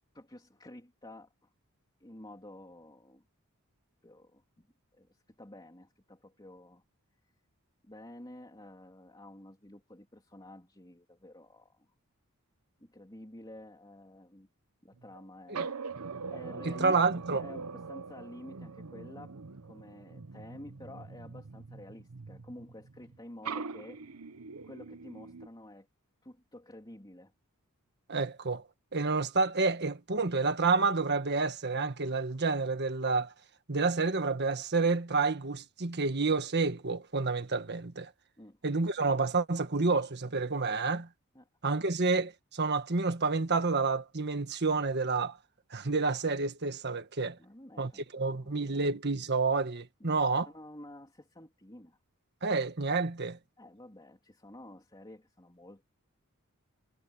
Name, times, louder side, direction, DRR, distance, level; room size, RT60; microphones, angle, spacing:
voice 1, 0.1-1.5 2.0-3.2 4.0-4.7 4.9-6.8 7.8-11.9 12.8-14.5 14.8-17.0 17.3-19.3 19.6-24.0 24.6-25.9 26.2-27.3 38.4-38.6 41.3-41.5 47.4-48.9 50.0-52.0 53.6-55.8, left 1 dB, 20° left, 3.3 m, -50 dB
sound 1, 14.9-15.2 15.5-23.2 23.4-25.5, right 4 dB, 80° right, 0.9 m, -42 dB
voice 2, 16.6-17.4 28.1-28.6 28.9-33.3 33.7-38.1 38.6-41.1 41.6-45.4 45.7-47.4 47.8-50.5 52.4-53.4, right 4 dB, 50° right, 1.5 m, -29 dB
head